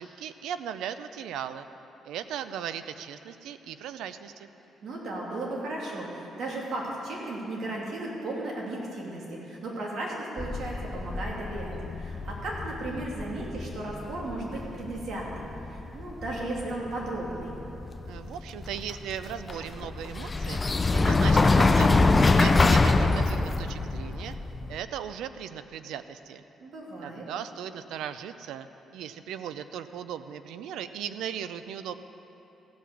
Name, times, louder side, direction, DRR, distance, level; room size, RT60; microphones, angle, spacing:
voice 1, 0.0-1.7 2.0-4.5 18.0-24.4 24.7-26.4 27.0-31.9, right 9 dB, 85° right, 11 dB, 0.5 m, -38 dB
voice 2, 4.8-17.5 26.6-27.2, right 2 dB, 65° right, -3 dB, 2.7 m, -35 dB
sound 1, 10.4-24.8, left 3 dB, 25° left, 0.5 m, -25 dB
15.5 x 6.0 x 7.1 m, 2.9 s
cardioid pair, 90°, 0 cm